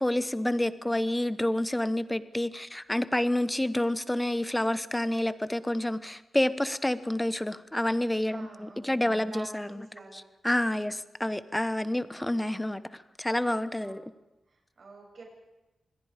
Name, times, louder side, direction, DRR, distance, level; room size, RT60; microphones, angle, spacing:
voice 1, 0.0-9.8 10.1-12.8 13.2-14.0, left 1 dB, 10° left, 14 dB, 1.0 m, -28 dB
voice 2, 0.7-1.0 8.3-10.2 13.8-14.0 14.5-15.2, right 3 dB, 60° right, 0 dB, 7.9 m, -49 dB
26.5 x 21.0 x 5.1 m, 1.0 s
cardioid pair, 85°, 0 cm